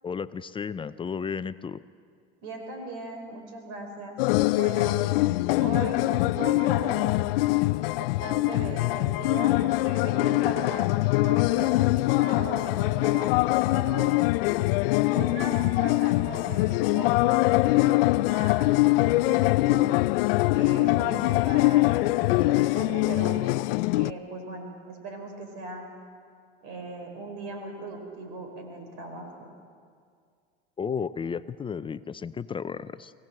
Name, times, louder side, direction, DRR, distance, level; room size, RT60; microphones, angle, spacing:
voice 1, 0.0-1.8 30.8-33.1, left 6 dB, 20° left, 14 dB, 0.5 m, -33 dB
voice 2, 2.4-4.2 4.5-5.0 5.6-7.2 8.0-14.2 15.1-19.9 20.5-23.4 23.9-25.9 26.6-29.5, right 2 dB, 65° right, 5 dB, 4.7 m, -38 dB
sound 1, 4.2-24.1, left 20 dB, 75° left, 0.4 m, -23 dB
24.5 x 16.5 x 7.7 m, 2.2 s
supercardioid pair, 105°, 29 cm